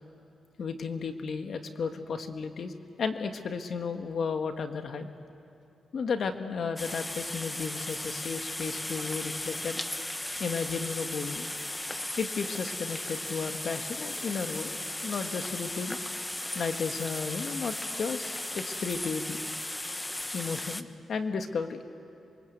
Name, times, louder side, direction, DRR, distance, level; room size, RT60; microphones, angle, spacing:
voice 1, 0.6-2.7 3.0-5.1 5.9-9.8 10.4-11.5 12.2-14.8 15.0-16.0 16.5-19.4 20.3-21.8, left 5 dB, 65° left, 7 dB, 1.7 m, -33 dB
sound 1, 6.8-20.8, left 1 dB, 15° left, 1.1 m, -36 dB
27.5 x 23.5 x 8.1 m, 2.8 s
cardioid pair, 75°, 0 cm